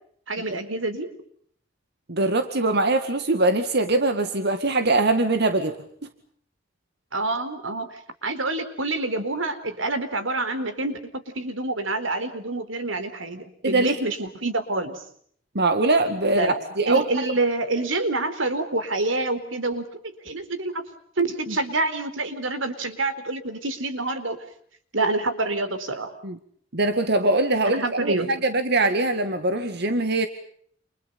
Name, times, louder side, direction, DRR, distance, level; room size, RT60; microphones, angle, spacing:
voice 1, 0.3-1.1 7.1-7.9 8.2-15.0 16.3-16.6 16.9-20.0 20.2-20.8 21.2-24.4 24.9-26.2 27.7-28.3, right 2 dB, 85° right, 10 dB, 4.3 m, -27 dB
voice 2, 2.1-6.1 13.6-14.0 15.5-17.0 21.5-21.6 26.2-26.4 26.7-30.3, right 2 dB, 60° right, 8 dB, 2.1 m, -22 dB
29.5 x 29.0 x 5.5 m, 0.63 s
head